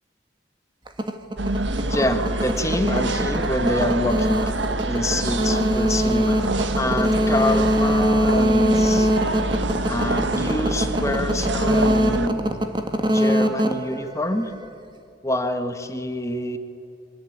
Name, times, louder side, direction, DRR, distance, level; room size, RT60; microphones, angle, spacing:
sound 1, 0.9-14.7, equal, 25° right, 1.7 m, -23 dB
sound 2, 1.4-12.3, right 2 dB, 85° right, 1.5 m, -26 dB
voice 1, 1.8-4.5 4.9-6.4 6.7-9.1 9.9-12.6 13.1-14.5 15.2-16.6, left 1 dB, 15° left, 7 dB, 1.6 m, -26 dB
28.0 x 24.0 x 8.7 m, 2.6 s
head